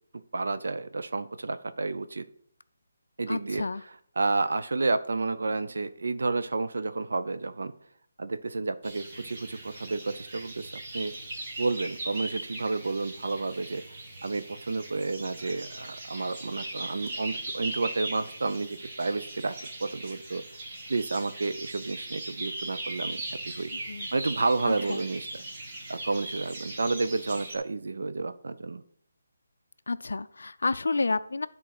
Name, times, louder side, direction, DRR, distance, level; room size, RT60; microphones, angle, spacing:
voice 1, 0.3-2.3 3.2-7.7 8.2-11.1 11.6-13.8 14.2-20.4 20.9-23.7 24.1-25.4 25.9-28.8, right 3 dB, 70° right, 11 dB, 0.5 m, -31 dB
voice 2, 3.3-3.8 23.7-24.1 24.9-25.0 29.9-31.5, left 3 dB, 80° left, 11 dB, 0.4 m, -30 dB
sound 1, 8.8-27.6, right 2 dB, 25° right, 1.3 m, -39 dB
10.0 x 3.7 x 5.9 m, 0.62 s
hypercardioid pair, 175°, 0 cm